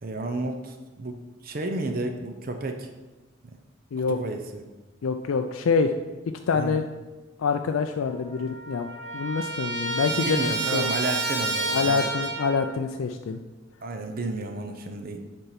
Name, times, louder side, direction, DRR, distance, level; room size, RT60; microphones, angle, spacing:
voice 1, 0.0-2.9 3.4-3.6 4.1-4.6 6.5-6.8 10.1-12.1 13.8-15.2, right 2 dB, 45° right, 5 dB, 0.6 m, -32 dB
voice 2, 5.0-5.9 6.5-6.8 7.4-10.4 10.7-10.9 11.7-13.4, left 5 dB, 80° left, 5 dB, 0.4 m, -26 dB
Trumpet, 8.0-8.1 8.3-12.7, right 2 dB, 65° right, 1.5 m, -30 dB
6.7 x 4.5 x 5.7 m, 1.2 s
head